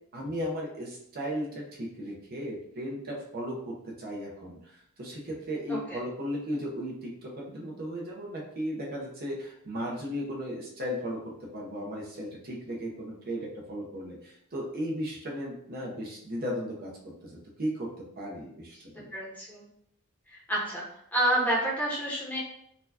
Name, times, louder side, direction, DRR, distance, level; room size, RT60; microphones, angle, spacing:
voice 1, 0.1-19.1, equal, 45° right, -2 dB, 0.7 m, -36 dB
voice 2, 19.1-19.7 20.3-20.8 21.1-22.4, right 1 dB, 10° left, -5 dB, 0.8 m, -29 dB
4.2 x 2.3 x 2.7 m, 0.71 s
head